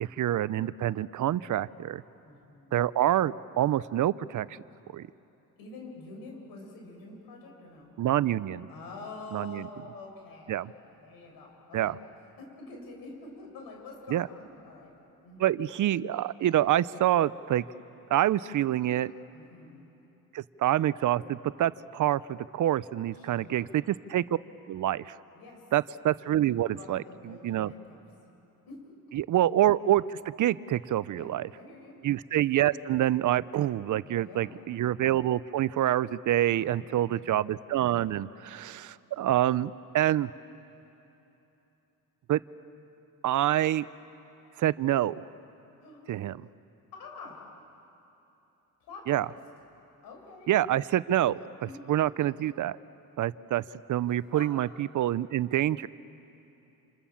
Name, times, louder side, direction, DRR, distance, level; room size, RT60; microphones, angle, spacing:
voice 1, 0.0-2.0 2.7-4.6 4.9-5.1 8.0-8.7 9.3-9.6 10.5-10.7 11.7-11.9 14.1-14.3 15.4-17.6 18.1-19.1 20.3-24.2 24.7-25.1 25.7-27.7 29.1-31.5 32.0-40.3 42.3-42.4 43.2-43.8 44.6-45.1 46.1-46.5 49.1-49.3 50.5-52.8 53.2-53.6 53.9-55.9, right 12 dB, 60° right, 18 dB, 0.6 m, -27 dB
voice 2, 2.2-2.8 5.6-7.9 8.7-11.9 12.4-14.9 15.2-15.5 19.3-19.9 23.1-23.7 25.3-25.6 26.7-28.0 28.7-29.2 31.1-32.0 34.1-34.6 36.4-37.1 38.3-38.5 45.8-46.0 46.9-47.4 48.8-49.3 50.0-50.5 51.6-52.0 54.1-54.5, left 3 dB, 85° left, 1 dB, 6.5 m, -47 dB
28.0 x 27.5 x 7.2 m, 3.0 s
cardioid pair, 95°, 35 cm